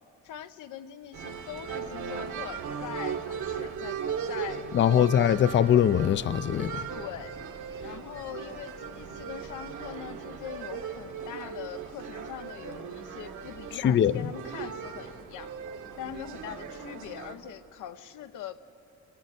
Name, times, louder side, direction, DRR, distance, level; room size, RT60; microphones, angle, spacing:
voice 1, 0.2-4.0 4.3-5.1 6.9-7.3 7.8-15.5 16.0-18.6, left 10 dB, 80° left, 0.9 m, -42 dB
sound 1, 1.1-17.3, right 6 dB, 75° right, 1.8 m, -38 dB
voice 2, 4.7-6.8 13.8-14.1, left 9 dB, 40° left, 0.5 m, -22 dB
27.0 x 13.5 x 8.4 m
cardioid pair, 90°, 30 cm